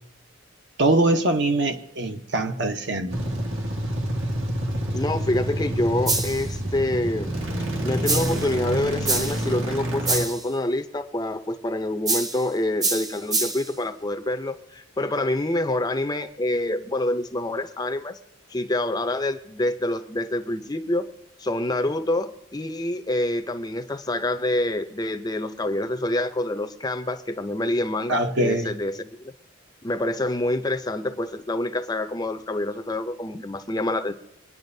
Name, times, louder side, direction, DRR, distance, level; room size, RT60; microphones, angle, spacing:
voice 1, 0.8-3.2 28.1-28.7, right 2 dB, 60° right, 5 dB, 1.0 m, -23 dB
sound 1, 3.1-10.2, right 1 dB, 75° right, 1.8 m, -28 dB
voice 2, 4.9-7.3 7.8-18.2 18.5-21.1 21.4-29.3 29.8-34.1, left 1 dB, 20° left, 8 dB, 0.6 m, -26 dB
sound 2, 6.1-6.5 8.1-8.5 9.1-9.5 10.1-10.5 12.1-12.5 12.8-13.7, right 2 dB, 20° right, 0.9 m, -26 dB
24.5 x 9.7 x 2.7 m, 0.81 s
head